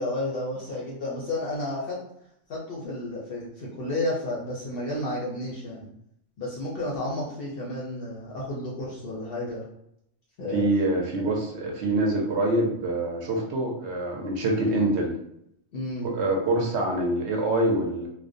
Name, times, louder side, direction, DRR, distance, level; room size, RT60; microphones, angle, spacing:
voice 1, 0.0-2.0 2.5-5.9 6.4-9.7 10.4-10.7 15.7-16.1, left 1 dB, 60° left, -5 dB, 0.6 m, -31 dB
voice 2, 10.5-15.1 16.0-18.1, right 1 dB, 65° right, 0 dB, 0.8 m, -25 dB
2.3 x 2.1 x 2.5 m, 0.75 s
omnidirectional pair, 1.4 m